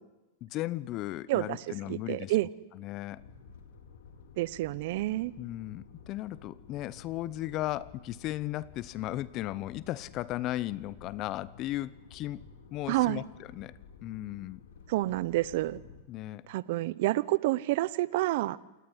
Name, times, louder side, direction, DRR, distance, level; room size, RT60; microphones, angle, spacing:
voice 1, 0.4-2.3 2.7-3.2 5.4-12.4 12.7-13.2 13.5-13.7 14.0-14.6 16.1-16.4, left 15 dB, 40° left, 20 dB, 1.0 m, -36 dB
voice 2, 1.3-2.5 4.4-5.3 12.9-13.3 14.9-15.8 16.5-18.6, right 18 dB, 60° right, 19 dB, 1.0 m, -29 dB
sound 1, 3.1-16.0, left 5 dB, 70° left, 4.2 m, -53 dB
28.0 x 19.5 x 9.9 m, 1.1 s
hypercardioid pair, 120°, 0 cm